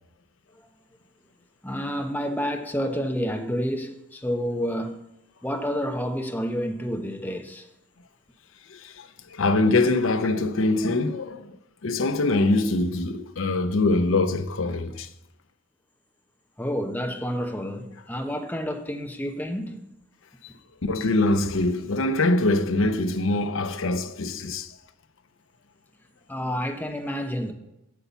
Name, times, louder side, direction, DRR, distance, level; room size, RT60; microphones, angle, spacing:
voice 1, 1.6-5.1 5.4-7.7 16.6-19.9 26.3-27.5, equal, 10° left, 1.0 m, -29 dB
voice 2, 8.7-11.5 11.8-15.1 20.8-24.8, left 2 dB, 65° left, 0.7 m, -23 dB
8.3 x 7.0 x 7.0 m
head